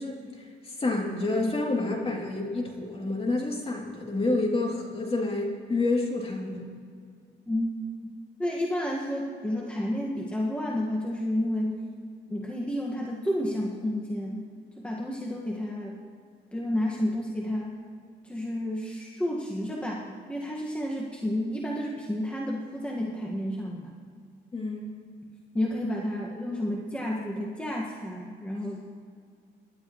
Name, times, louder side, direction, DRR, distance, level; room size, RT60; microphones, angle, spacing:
voice 1, 0.0-6.6 24.5-25.0, left 2 dB, 30° left, -1 dB, 2.9 m, -29 dB
voice 2, 8.4-11.8 12.3-14.4 14.8-16.0 16.5-17.8 18.2-23.9 25.5-28.8, left 1 dB, 5° left, -2 dB, 1.7 m, -31 dB
25.0 x 12.0 x 3.1 m, 2.2 s
cardioid pair, 90°, 20 cm